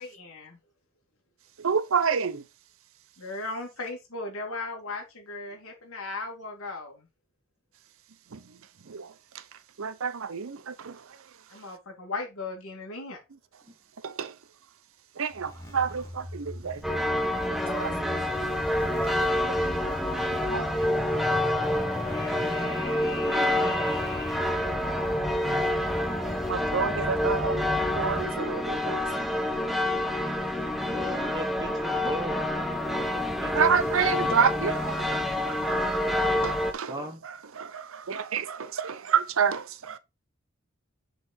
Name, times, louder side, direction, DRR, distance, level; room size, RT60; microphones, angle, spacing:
voice 1, 0.2-0.6 3.2-7.1 11.5-13.2, left 3 dB, 75° left, 2.4 m, -37 dB
voice 2, 1.6-2.4 8.3-8.4 8.9-9.1 9.8-11.0 14.0-14.3 15.2-16.8 17.8-17.9 20.5-20.9 25.3-25.4 26.5-27.7 28.0-29.1 33.5-40.0, right 6 dB, 65° right, 0.6 m, -29 dB
sound 1, 15.3-28.3, left 1 dB, 15° left, 1.1 m, -37 dB
sound 2, 16.8-36.7, left 1 dB, ahead, 0.7 m, -28 dB
voice 3, 30.7-33.5 34.1-34.4 36.9-37.2, right 1 dB, 15° right, 1.5 m, -38 dB
6.8 x 4.1 x 4.3 m
head